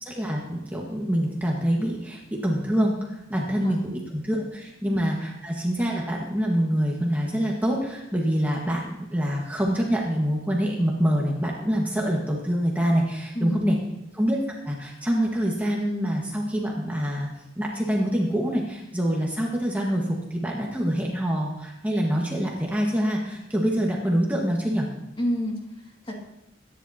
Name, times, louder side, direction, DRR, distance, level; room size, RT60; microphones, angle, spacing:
voice 1, 0.0-13.7 14.1-14.4 14.6-17.3 17.5-24.9, equal, 10° right, -2 dB, 1.6 m, -25 dB
voice 2, 3.3-3.8 4.8-5.0 13.3-13.7 25.2-26.2, equal, 25° left, -1 dB, 2.3 m, -30 dB
23.0 x 10.5 x 2.9 m, 0.89 s
head